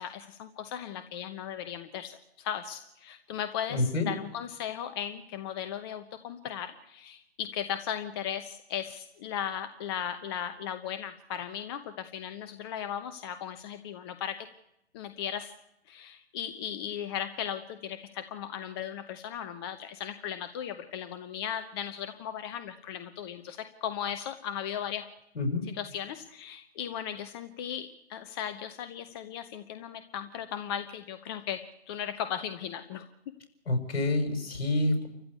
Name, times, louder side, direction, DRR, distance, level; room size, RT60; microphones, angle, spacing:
voice 1, 0.0-14.5 14.9-15.5 15.9-25.0 25.7-31.6 31.9-33.1, left 9 dB, 20° left, 10 dB, 0.9 m, -37 dB
voice 2, 3.7-4.1 25.3-25.7 33.7-35.1, left 2 dB, 60° left, 5 dB, 6.4 m, -27 dB
28.5 x 15.0 x 8.3 m, 0.82 s
figure-of-eight pair, 135°, 34 cm